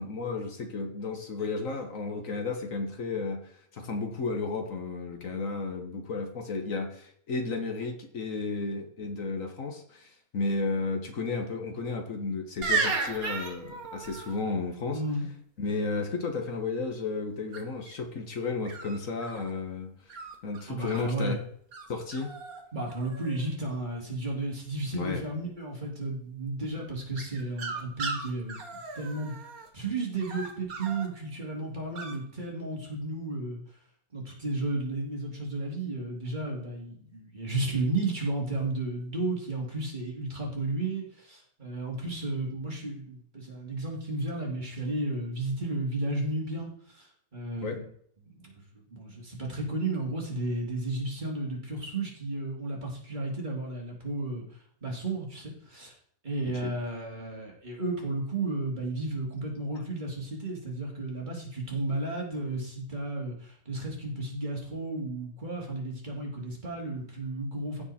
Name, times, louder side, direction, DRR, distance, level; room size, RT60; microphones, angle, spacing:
voice 1, 0.0-15.0 15.6-19.9 20.4-21.4 21.9-22.3 24.9-25.2 47.6-47.8 56.5-56.7, left 3 dB, 65° left, 5 dB, 1.6 m, -33 dB
sound 1, 12.6-14.4 17.5-17.9 18.7-19.5 20.1-21.0 21.7-21.9 22.1-22.6 22.9-23.5 27.2-29.7 30.2-31.1 32.0-32.2, right 4 dB, 75° right, 2.0 m, -35 dB
voice 2, 14.9-15.3 20.7-21.4 22.7-29.3 29.7-33.6 34.1-47.8 48.2-48.6 48.9-54.4 54.8-55.9 56.2-67.8, right 2 dB, 30° right, -2 dB, 2.8 m, -33 dB
15.5 x 5.4 x 4.3 m, 0.63 s
omnidirectional pair, 1.5 m